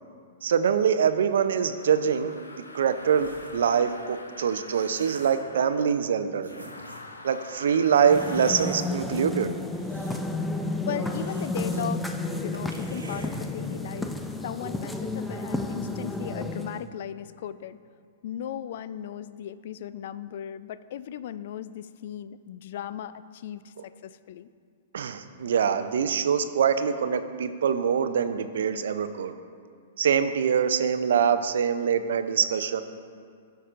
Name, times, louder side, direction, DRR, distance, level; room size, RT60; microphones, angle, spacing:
voice 1, 0.4-2.3 2.7-6.5 7.2-9.5 24.9-29.3 30.0-32.8, right 7 dB, 65° right, 10 dB, 0.5 m, -24 dB
sound 1, 1.2-5.9 6.4-8.9, left 2 dB, 90° left, 0.7 m, -45 dB
sound 2, 3.0-3.7 4.4-5.5 6.1-6.2 6.4-7.1 8.1-8.9 9.6-10.5 10.8-10.9 11.2-11.9 12.2-12.3 12.5-13.3, right 3 dB, 85° right, 1.1 m, -46 dB
sound 3, 7.9-16.9, left 2 dB, 5° left, 0.5 m, -32 dB
voice 2, 10.9-14.1 14.4-17.8 18.2-24.5, left 10 dB, 55° left, 15 dB, 0.3 m, -37 dB
15.0 x 6.5 x 2.5 m, 2.2 s
figure-of-eight pair, 110°, 0 cm